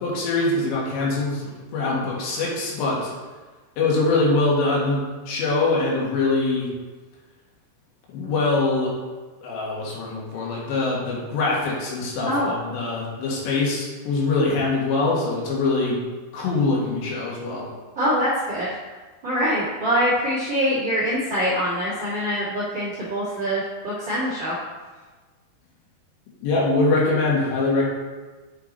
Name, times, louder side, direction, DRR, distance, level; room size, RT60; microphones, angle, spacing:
voice 1, 0.0-3.1 3.8-6.7 8.1-8.9 9.4-16.0 16.3-17.7 26.4-27.9, left 3 dB, 85° left, -4 dB, 4.0 m, -23 dB
voice 2, 17.9-18.7 19.2-24.5, equal, 50° right, -9 dB, 1.4 m, -24 dB
8.3 x 5.9 x 4.1 m, 1.3 s
omnidirectional pair, 4.9 m